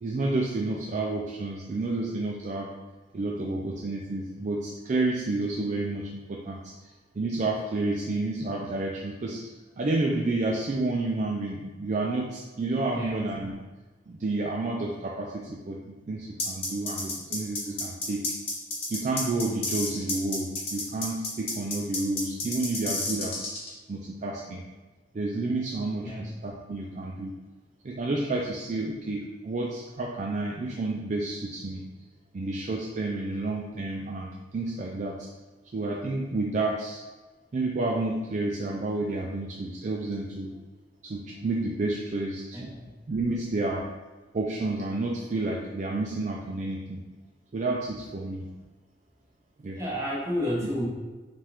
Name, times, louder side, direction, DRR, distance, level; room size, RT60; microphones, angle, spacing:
voice 1, 0.0-2.7 3.1-6.9 7.2-13.6 14.1-18.3 18.9-23.5 23.9-24.6 25.1-27.3 27.8-31.8 32.3-35.3 35.7-37.0 37.5-40.5 41.0-42.8 43.1-43.9 44.3-47.0 47.5-48.5 49.6-49.8, right 2 dB, 40° right, -1 dB, 0.3 m, -30 dB
sound 1, 16.4-23.7, left 2 dB, 30° left, 0.8 m, -31 dB
voice 2, 42.5-42.9 49.8-50.9, equal, 15° right, -6 dB, 1.0 m, -31 dB
5.5 x 2.4 x 3.5 m, 1.2 s
head